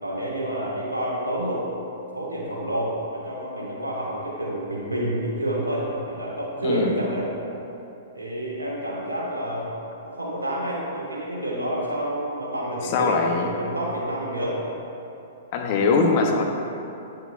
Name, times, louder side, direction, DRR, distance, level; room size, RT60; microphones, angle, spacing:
voice 1, 0.0-1.6 2.1-7.3 8.1-9.7 10.0-14.6, right 1 dB, 85° right, -4 dB, 1.6 m, -28 dB
voice 2, 12.9-13.5 15.5-16.4, left 4 dB, 45° left, 2 dB, 0.8 m, -21 dB
8.9 x 6.5 x 2.4 m, 2.9 s
figure-of-eight pair, 110°, 0 cm